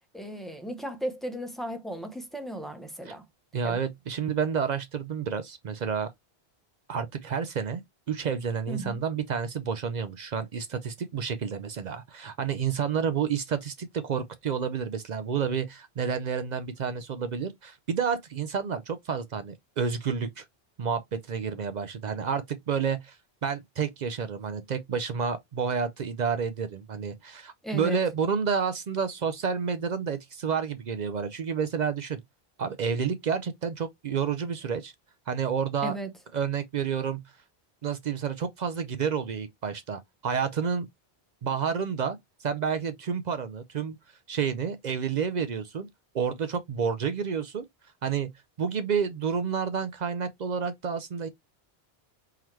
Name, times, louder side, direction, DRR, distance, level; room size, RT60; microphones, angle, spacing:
voice 1, 0.1-3.2 3.6-3.8 8.7-9.0 27.6-28.0 35.8-36.1, right 1 dB, ahead, 0.6 m, -35 dB
voice 2, 3.5-6.1 6.9-7.8 8.1-20.4 20.8-23.2 23.4-32.2 32.6-34.9 35.3-35.9 36.3-37.2 37.8-40.9 41.4-44.0 44.3-45.9 46.1-47.6 48.0-48.3 48.6-51.3, right 6 dB, 55° right, 0.5 m, -30 dB
3.8 x 2.9 x 3.0 m
omnidirectional pair, 1.1 m